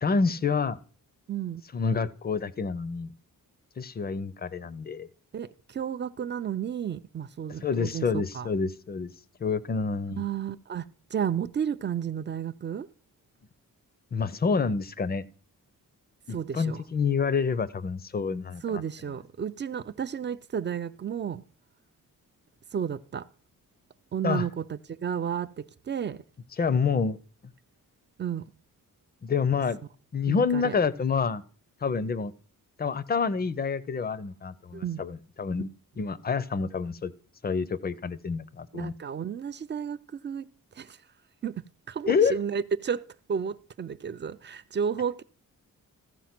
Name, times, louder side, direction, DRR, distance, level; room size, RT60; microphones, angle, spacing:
voice 1, 0.0-0.8 1.7-3.1 3.8-5.1 7.6-9.1 9.4-10.2 14.1-15.3 16.3-18.8 24.2-24.4 26.6-27.2 29.2-29.8 30.1-31.4 31.8-32.3 32.8-35.7 36.0-37.1 37.4-38.9 42.1-42.4, left 5 dB, 30° left, 0.5 m, -28 dB
voice 2, 1.3-1.6 5.3-8.5 10.2-12.9 16.3-16.8 18.6-21.4 22.7-23.3 24.1-26.2 28.2-28.4 30.3-30.7 34.7-35.0 38.7-40.5 40.8-41.0 41.4-45.2, right 8 dB, 35° right, 0.4 m, -32 dB
15.0 x 5.0 x 5.9 m
wide cardioid pair, 160°, 34 cm